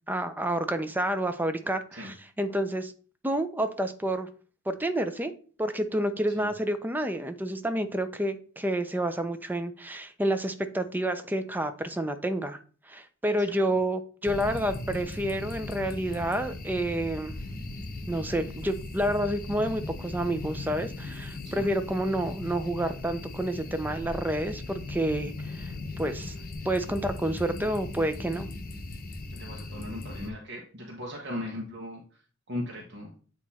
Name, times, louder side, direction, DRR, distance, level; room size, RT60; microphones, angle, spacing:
voice 1, 0.1-2.9 3.2-4.3 4.7-5.3 5.6-12.6 12.9-17.4 18.1-26.3 26.6-28.5, right 1 dB, 10° right, 9 dB, 0.5 m, -29 dB
sound 1, 14.2-30.3, left 2 dB, 45° left, 0.9 m, -38 dB
voice 2, 29.3-32.0 32.5-33.1, left 1 dB, 55° right, -1 dB, 1.2 m, -38 dB
8.3 x 3.0 x 4.2 m, 0.40 s
head